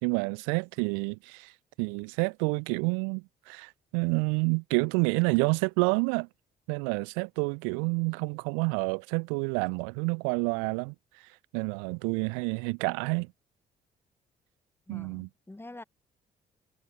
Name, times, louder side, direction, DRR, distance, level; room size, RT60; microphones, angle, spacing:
voice 1, 0.0-6.3 6.7-13.3 14.9-15.3, right 39 dB, 65° right, 0.6 m, -29 dB
voice 2, 14.9-15.8, left 2 dB, 10° left, 1.1 m, -46 dB
figure-of-eight pair, 45°, 21 cm